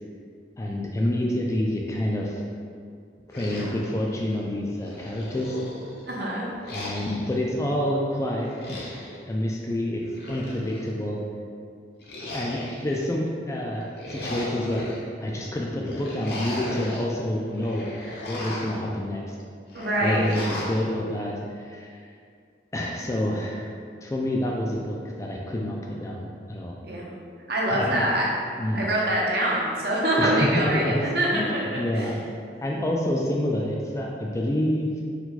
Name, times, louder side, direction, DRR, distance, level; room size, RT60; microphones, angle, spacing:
voice 1, 0.6-2.4 3.3-5.6 6.7-8.8 9.3-10.0 10.3-11.2 12.3-17.9 18.3-19.3 20.0-22.1 22.7-23.7 24.0-26.7 27.7-28.0 28.6-28.9 30.2-30.9 31.3-31.5 31.8-32.2 32.6-34.9, left 1 dB, 15° left, -2 dB, 0.3 m, -28 dB
sound 1, 3.3-4.4 4.8-6.1 6.6-7.4 8.4-9.2 10.0-10.9 12.0-13.0 13.8-15.0 15.8-17.1 17.5-18.8 19.7-20.8, left 1 dB, 60° left, 0.7 m, -36 dB
voice 2, 6.1-6.5 19.7-20.4 26.8-27.1 27.5-28.3 28.7-31.6 31.9-32.1, right 1 dB, 60° right, -4 dB, 0.9 m, -24 dB
4.6 x 2.3 x 4.0 m, 2.3 s
head